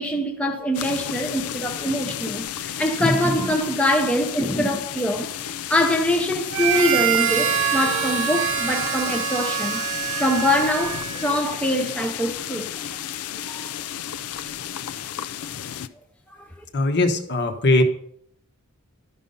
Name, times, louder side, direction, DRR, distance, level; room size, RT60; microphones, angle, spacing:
voice 1, 0.0-5.3 5.7-12.7 13.5-13.7 16.3-16.6, left 1 dB, 5° left, 0.6 m, -24 dB
sound 1, 0.7-15.9, left 10 dB, 85° left, 0.4 m, -33 dB
Harmonica, 6.5-11.5, right 8 dB, 70° right, 0.9 m, -25 dB
voice 2, 16.7-17.8, left 2 dB, 50° left, 1.1 m, -20 dB
12.0 x 5.5 x 5.2 m
head